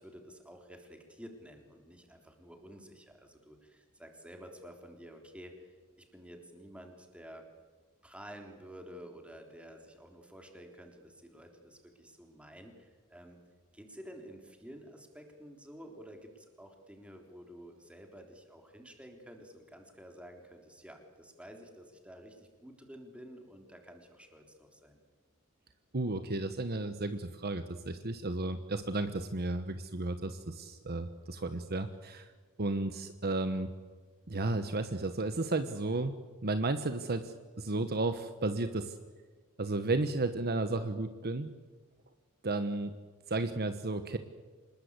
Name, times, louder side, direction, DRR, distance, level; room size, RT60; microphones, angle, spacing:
voice 1, 0.0-7.4 8.0-13.4 13.7-25.0, equal, 5° right, 3 dB, 3.5 m, -51 dB
voice 2, 25.9-32.3 32.6-33.7 34.3-36.1 36.4-38.9 39.6-41.5 42.4-42.9 43.3-44.2, right 2 dB, 45° right, 9 dB, 1.2 m, -33 dB
26.5 x 20.5 x 8.3 m, 1.4 s
head